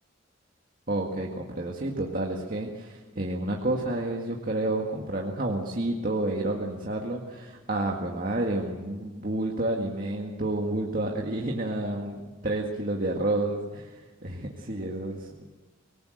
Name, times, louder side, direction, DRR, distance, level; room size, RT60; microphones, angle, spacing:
voice 1, 0.9-15.6, right 2 dB, 45° right, 0 dB, 1.9 m, -30 dB
25.0 x 19.0 x 7.8 m, 1.3 s
head